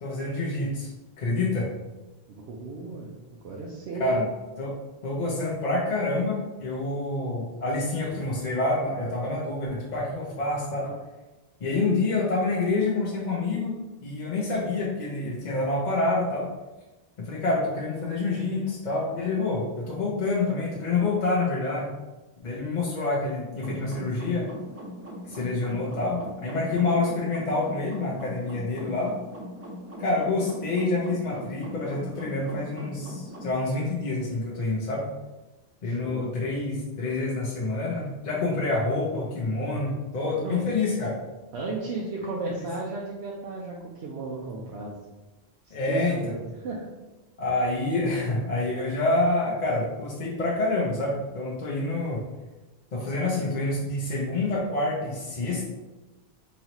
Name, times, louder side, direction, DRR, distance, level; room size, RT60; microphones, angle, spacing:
voice 1, 0.0-0.9 1.2-1.7 4.0-4.3 4.6-11.0 11.6-13.8 14.0-16.5 17.2-21.9 22.4-24.5 25.2-29.1 30.0-35.1 35.8-41.2 42.5-42.6 45.7-46.4 47.4-52.2 52.9-55.6, left 2 dB, 50° left, -4 dB, 0.7 m, -27 dB
voice 2, 2.3-3.1 3.4-4.2 35.8-36.3 40.4-40.7 41.5-45.0 45.6-46.9, right 3 dB, 80° right, -3 dB, 0.9 m, -35 dB
sound 1, 23.5-33.5, equal, 20° right, 0.5 m, -40 dB
3.9 x 3.1 x 2.9 m, 1.1 s
omnidirectional pair, 1.1 m